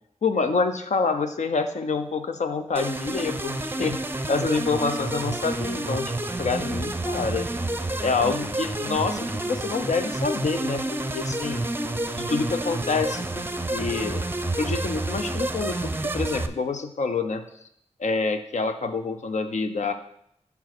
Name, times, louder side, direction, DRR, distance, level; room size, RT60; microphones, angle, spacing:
voice 1, 0.2-4.0 4.3-6.1 6.4-7.5 8.0-10.8 11.1-11.7 12.1-14.2 14.6-17.4 18.0-19.9, left 4 dB, 75° left, 7 dB, 0.6 m, -27 dB
sound 1, 2.8-16.5, right 1 dB, 20° right, 0.6 m, -29 dB
5.4 x 4.7 x 6.0 m, 0.71 s
cardioid pair, 45°, 12 cm